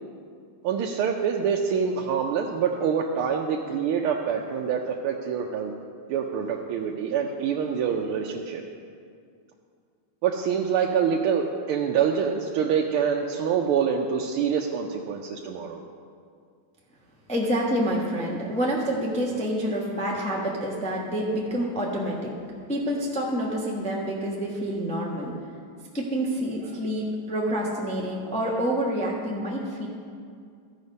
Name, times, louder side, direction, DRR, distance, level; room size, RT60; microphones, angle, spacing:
voice 1, 0.6-5.7 6.1-8.6 10.2-15.8, right 7 dB, 90° right, 1 dB, 1.5 m, -26 dB
voice 2, 17.3-22.3 22.7-25.4 25.9-29.9, equal, 5° left, -3 dB, 0.6 m, -27 dB
14.0 x 4.9 x 5.3 m, 2.2 s
omnidirectional pair, 2.3 m